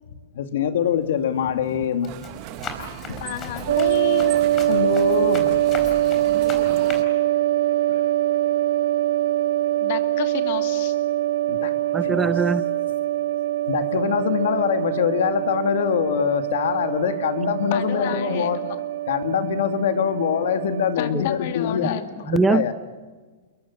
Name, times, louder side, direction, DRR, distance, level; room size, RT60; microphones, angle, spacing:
voice 1, 0.4-2.2 3.1-3.2 4.7-5.5 11.5-11.7 12.0-12.3 13.7-18.7 19.1-22.7, left 8 dB, 75° left, 8 dB, 2.1 m, -24 dB
Run, 0.9-1.2 1.7-7.0, left 4 dB, 20° left, 4.2 m, -37 dB
sound 1, 2.1-7.0, right 13 dB, 40° right, 1.3 m, -38 dB
voice 2, 3.1-4.4 9.8-10.9 17.7-18.8 21.0-22.3, left 11 dB, 55° left, 7 dB, 2.4 m, -31 dB
sound 2, 3.7-21.0, right 13 dB, 70° right, 1.3 m, -23 dB
voice 3, 11.9-12.6 21.9-22.0 22.3-22.7, right 4 dB, 10° right, 13 dB, 0.7 m, -21 dB
29.0 x 22.0 x 7.2 m, 1.4 s
supercardioid pair, 160°, 0 cm